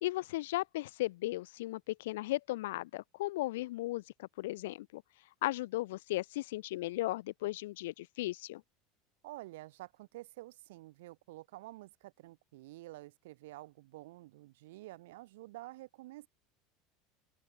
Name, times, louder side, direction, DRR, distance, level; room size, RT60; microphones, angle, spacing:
voice 1, 0.0-5.0 5.4-8.6, left 17 dB, 90° left, 1.4 m, -36 dB
voice 2, 9.2-16.3, right 18 dB, 80° right, 3.5 m, -50 dB
open air
supercardioid pair, 175°, 0 cm